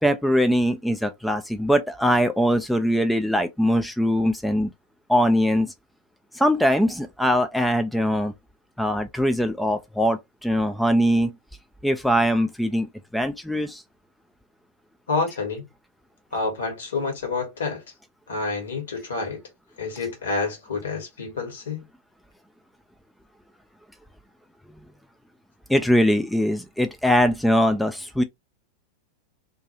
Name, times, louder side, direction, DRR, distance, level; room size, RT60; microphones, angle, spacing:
voice 1, 0.0-4.7 5.1-5.7 6.3-8.3 8.8-11.3 11.8-12.9 13.1-13.8 25.7-28.2, equal, ahead, 0.3 m, -21 dB
voice 2, 15.1-15.6 16.3-17.8 18.3-19.4 19.8-21.8, left 4 dB, 65° left, 1.1 m, -28 dB
2.5 x 2.3 x 2.8 m
figure-of-eight pair, 90°, 0 cm